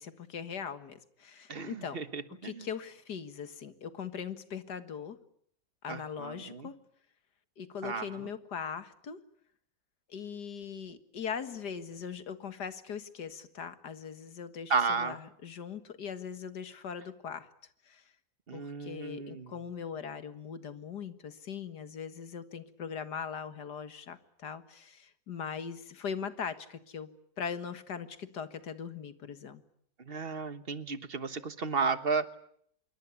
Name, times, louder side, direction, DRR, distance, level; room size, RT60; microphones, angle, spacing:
voice 1, 0.0-2.0 2.3-5.2 5.8-6.7 7.6-9.2 10.1-17.5 17.9-18.0 18.5-27.1 27.4-29.6, left 7 dB, 70° left, 11 dB, 2.2 m, -40 dB
voice 2, 1.5-2.6 5.9-6.7 7.8-8.1 14.7-15.2 18.5-19.5 30.1-32.4, right 5 dB, 35° right, 13 dB, 1.4 m, -33 dB
26.5 x 22.5 x 8.4 m, 0.67 s
omnidirectional pair, 1.8 m